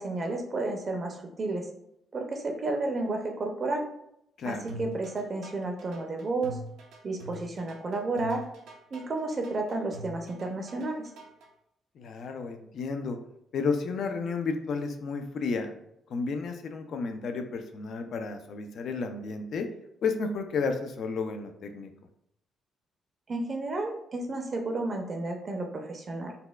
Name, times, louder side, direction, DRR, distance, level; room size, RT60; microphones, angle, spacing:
voice 1, 0.0-1.7 2.1-3.8 4.4-6.6 7.0-8.4 8.9-11.1 23.3-26.4, right 2 dB, 40° right, 3 dB, 0.5 m, -32 dB
voice 2, 4.4-4.7 12.0-13.2 13.5-15.7 16.1-19.7 20.0-21.9, left 4 dB, 65° left, 6 dB, 0.4 m, -32 dB
sound 1, 4.7-11.5, right 1 dB, 90° right, 0.6 m, -44 dB
4.0 x 2.2 x 2.3 m, 0.76 s
cardioid pair, 90°, 0 cm